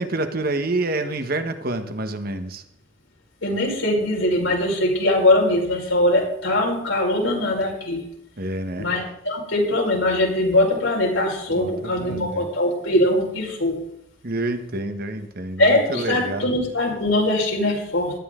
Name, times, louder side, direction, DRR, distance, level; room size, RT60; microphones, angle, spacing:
voice 1, 0.0-2.6 8.4-8.9 11.5-12.5 14.2-16.5, right 2 dB, 50° right, 8 dB, 1.4 m, -28 dB
voice 2, 3.4-8.0 8.8-13.8 15.6-18.1, left 1 dB, 80° left, -2 dB, 5.0 m, -21 dB
17.5 x 13.0 x 3.8 m, 0.76 s
head